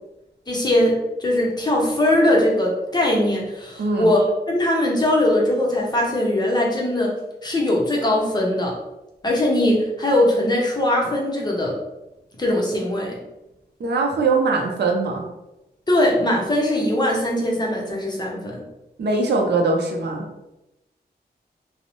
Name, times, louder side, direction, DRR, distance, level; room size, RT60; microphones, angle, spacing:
voice 1, 0.5-7.1 7.4-8.7 9.2-11.7 12.4-13.1 15.9-18.6, left 1 dB, 25° left, -2 dB, 0.7 m, -20 dB
voice 2, 3.8-4.1 13.8-15.3 19.0-20.3, right 3 dB, 90° right, 1 dB, 0.5 m, -21 dB
2.6 x 2.0 x 3.0 m, 0.95 s
wide cardioid pair, 100°, 17 cm